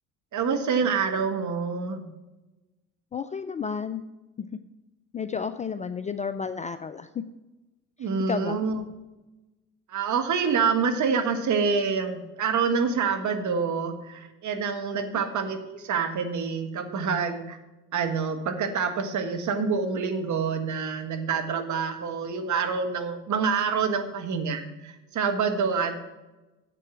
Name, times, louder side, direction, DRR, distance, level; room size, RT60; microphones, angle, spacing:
voice 1, 0.3-2.1 8.0-8.8 9.9-17.6 17.9-25.9, right 5 dB, 45° right, 6 dB, 1.6 m, -27 dB
voice 2, 3.1-4.0 4.4-4.5 5.1-7.2 8.0-8.6 14.9-15.2, left 6 dB, 20° left, 10 dB, 0.4 m, -32 dB
7.7 x 7.6 x 6.1 m, 1.1 s
hypercardioid pair, 65°, 41 cm